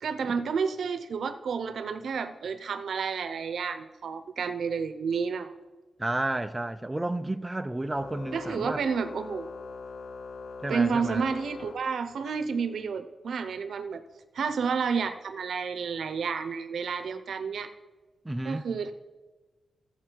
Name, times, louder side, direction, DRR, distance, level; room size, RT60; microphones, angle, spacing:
voice 1, 0.0-5.5 8.3-9.5 10.7-14.0 14.3-17.7 18.4-18.9, right 5 dB, 70° right, 0.7 m, -30 dB
voice 2, 6.0-8.8 10.6-11.2 18.2-18.7, right 1 dB, 10° right, 0.3 m, -31 dB
Organ, 7.9-12.5, left 4 dB, 65° left, 0.4 m, -42 dB
14.5 x 7.3 x 4.6 m
wide cardioid pair, 180°, 0 cm